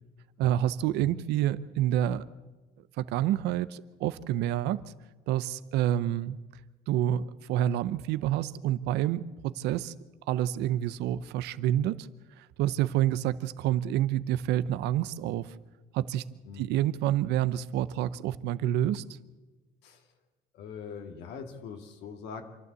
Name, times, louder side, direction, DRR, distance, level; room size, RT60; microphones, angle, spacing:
voice 1, 0.4-2.2 3.0-4.8 5.3-6.4 6.9-7.2 7.5-9.9 10.3-12.1 12.6-15.4 15.9-16.2 16.6-19.0, right 12 dB, 85° right, 0.8 m, -28 dB
voice 2, 20.5-22.5, left 6 dB, 85° left, 2.5 m, -42 dB
26.5 x 12.5 x 8.3 m
cardioid pair, 110°, 17 cm